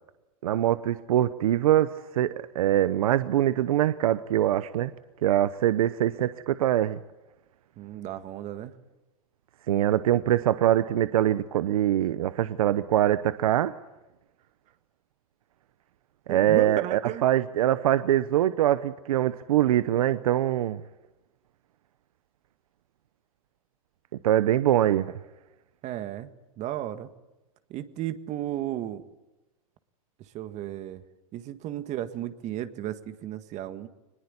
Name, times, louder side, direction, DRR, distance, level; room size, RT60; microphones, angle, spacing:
voice 1, 0.4-4.9 5.2-7.0 9.7-13.7 16.3-20.8 24.2-25.1, right 12 dB, 85° right, 14 dB, 0.9 m, -23 dB
voice 2, 7.8-8.7 16.3-17.2 25.8-26.3 26.6-27.1 27.7-29.0 30.2-31.0 31.3-33.9, right 12 dB, 40° right, 10 dB, 1.7 m, -34 dB
22.5 x 20.5 x 9.8 m, 1.0 s
supercardioid pair, 125°, 18 cm